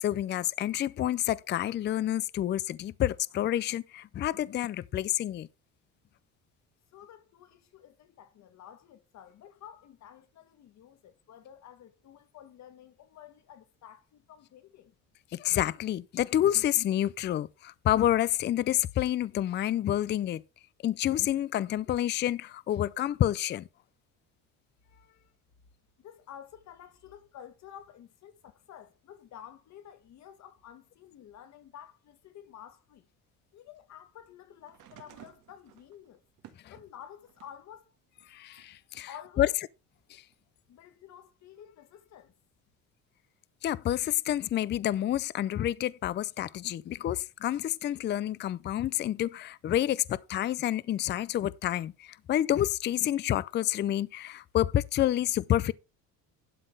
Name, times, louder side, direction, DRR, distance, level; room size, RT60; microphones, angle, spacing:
voice 1, 0.0-5.5 15.3-20.4 20.8-23.7 38.3-39.1 39.4-39.5 40.1-40.2 43.6-55.7, left 12 dB, 35° left, 0.4 m, -28 dB
voice 2, 6.9-14.9 24.8-25.3 26.0-33.1 33.5-36.2 36.7-37.9 39.1-39.5 40.7-42.3, left 10 dB, 60° left, 2.0 m, -51 dB
sound 1, 34.6-37.7 38.2-39.3 40.3-40.4, right 12 dB, 70° right, 1.6 m, -56 dB
12.0 x 4.1 x 6.4 m
cardioid pair, 120°, 32 cm